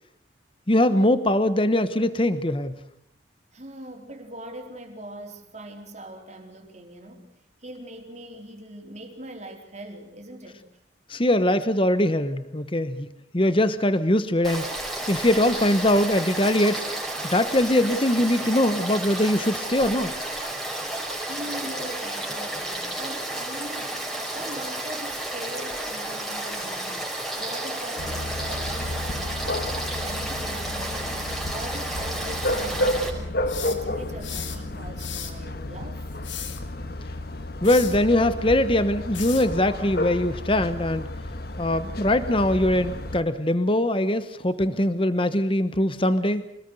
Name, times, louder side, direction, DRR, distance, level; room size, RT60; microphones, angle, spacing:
voice 1, 0.7-2.7 11.1-13.1 13.3-14.7 15.1-16.8 17.2-20.1 37.6-41.1 41.6-46.4, left 1 dB, 25° left, 12 dB, 1.1 m, -22 dB
voice 2, 3.5-7.3 7.6-10.6 21.2-24.0 24.3-27.1 27.3-29.8 30.0-31.2 31.5-33.3 33.6-36.1, right 1 dB, 35° right, 3 dB, 4.1 m, -41 dB
Frog / Stream, 14.4-33.1, right 1 dB, ahead, 5.2 m, -32 dB
sound 1, 28.0-43.2, left 1 dB, 55° left, 1.5 m, -31 dB
sound 2, 33.5-34.6 35.0-35.4 36.1-36.6 37.6-38.0 39.1-39.5, left 9 dB, 75° left, 2.9 m, -36 dB
26.0 x 19.5 x 8.0 m, 0.75 s
head